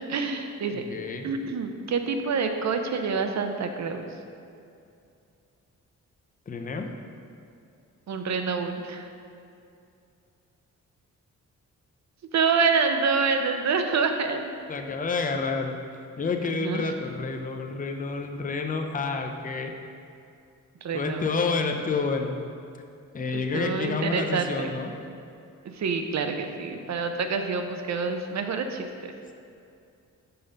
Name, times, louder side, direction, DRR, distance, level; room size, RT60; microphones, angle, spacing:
voice 1, 0.1-0.8 1.2-4.0 8.1-9.1 12.3-14.5 16.5-16.9 20.8-21.3 23.3-24.7 25.7-28.9, right 5 dB, 60° right, 6 dB, 0.7 m, -27 dB
voice 2, 0.7-1.3 6.5-6.9 14.7-15.7 16.2-19.7 20.9-22.4 23.1-24.9, left 4 dB, 25° left, 4 dB, 0.6 m, -29 dB
5.6 x 5.4 x 5.2 m, 2.5 s
cardioid pair, 85°, 32 cm